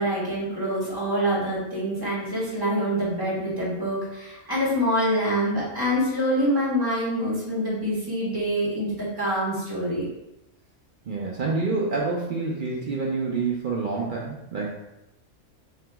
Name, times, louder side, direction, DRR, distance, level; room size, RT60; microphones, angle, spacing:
voice 1, 0.0-10.0, equal, 15° right, -9 dB, 1.4 m, -25 dB
voice 2, 11.1-14.7, right 3 dB, 65° right, -3 dB, 0.5 m, -27 dB
3.7 x 2.9 x 3.4 m, 0.90 s
omnidirectional pair, 1.5 m